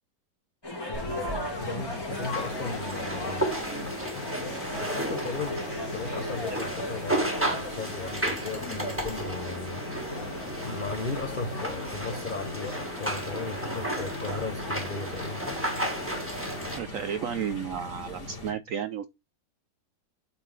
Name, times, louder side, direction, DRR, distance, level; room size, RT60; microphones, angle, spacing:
sound 1, 0.6-16.8, left 1 dB, 15° left, 1.5 m, -39 dB
sound 2, 0.9-18.5, left 2 dB, 40° left, 2.7 m, -40 dB
voice 1, 1.6-3.8 4.7-10.2 10.6-15.6, left 4 dB, 70° left, 0.4 m, -37 dB
sound 3, 2.1-16.8, right 1 dB, 10° right, 1.5 m, -34 dB
voice 2, 16.7-19.0, right 9 dB, 75° right, 0.7 m, -32 dB
8.5 x 3.9 x 4.8 m
omnidirectional pair, 1.9 m